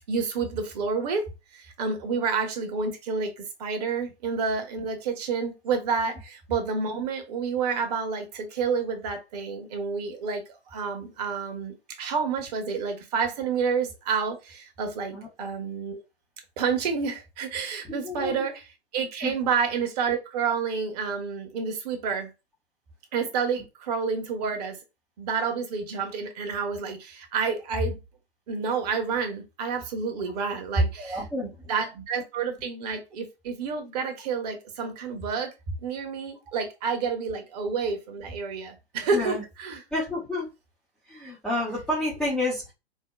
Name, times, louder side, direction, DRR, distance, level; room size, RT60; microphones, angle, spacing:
voice 1, 0.1-1.2 1.5-16.0 16.6-18.7 18.9-22.3 23.1-24.8 25.2-28.0 28.5-35.5 35.8-39.8, right 5 dB, 40° right, 1.0 m, -29 dB
voice 2, 17.8-18.3 19.2-19.3 31.0-31.5 39.1-39.4 39.9-40.5 41.1-42.7, left 1 dB, ahead, 0.5 m, -30 dB
4.4 x 2.1 x 2.2 m
figure-of-eight pair, 115°, 33 cm